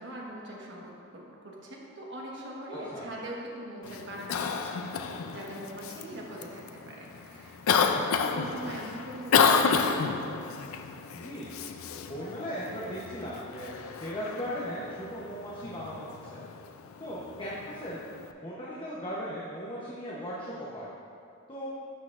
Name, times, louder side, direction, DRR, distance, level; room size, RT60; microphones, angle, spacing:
voice 1, 0.0-10.1, right 1 dB, 55° right, -3 dB, 1.4 m, -42 dB
voice 2, 2.7-3.1 11.1-11.5 12.1-13.7 14.0-16.4 17.0-18.0 18.4-20.9 21.5-21.7, equal, 25° left, -7 dB, 0.9 m, -37 dB
Cough, 3.8-18.3, left 5 dB, 75° left, 0.4 m, -31 dB
12.0 x 6.4 x 2.5 m, 2.6 s
head